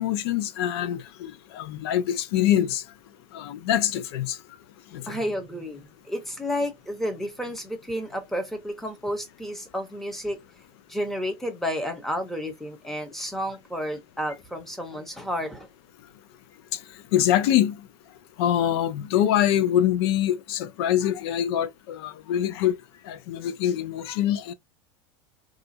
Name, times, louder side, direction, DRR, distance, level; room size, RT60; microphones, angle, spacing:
voice 1, 0.0-2.8 3.3-4.4 4.9-5.2 17.1-17.8 18.4-22.8 23.1-24.5, left 11 dB, 75° left, 0.5 m, -24 dB
voice 2, 5.1-10.4 10.9-15.7, equal, ahead, 0.9 m, -31 dB
3.8 x 2.4 x 2.6 m
supercardioid pair, 135°, 14 cm